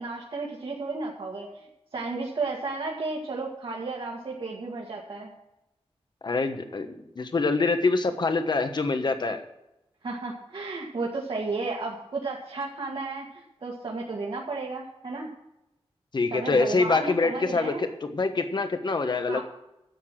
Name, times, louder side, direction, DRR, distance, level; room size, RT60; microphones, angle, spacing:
voice 1, 0.0-1.7 1.9-5.3 10.0-15.3 16.3-17.8 19.3-19.4, right 3 dB, 60° right, -3 dB, 2.0 m, -33 dB
voice 2, 6.2-6.9 7.1-9.4 16.1-19.4, left 3 dB, 45° left, 7 dB, 1.3 m, -25 dB
12.0 x 8.2 x 7.6 m, 0.90 s
wide cardioid pair, 145°, 10 cm